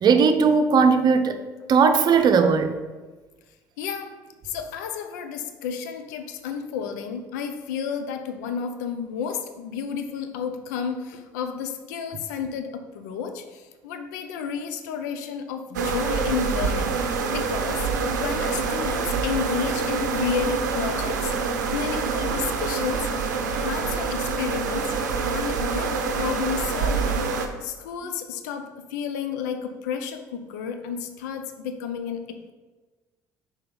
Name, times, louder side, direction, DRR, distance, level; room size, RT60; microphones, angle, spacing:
voice 1, 0.0-1.4 1.7-2.7, right 5 dB, 45° right, 8 dB, 0.7 m, -18 dB
voice 2, 3.8-16.9 17.3-23.0 23.5-32.5, left 7 dB, 75° left, 7 dB, 0.6 m, -31 dB
sound 1, 15.7-27.5, right 5 dB, 85° right, 0.6 m, -26 dB
5.7 x 4.5 x 3.9 m, 1.3 s
hypercardioid pair, 60°, 9 cm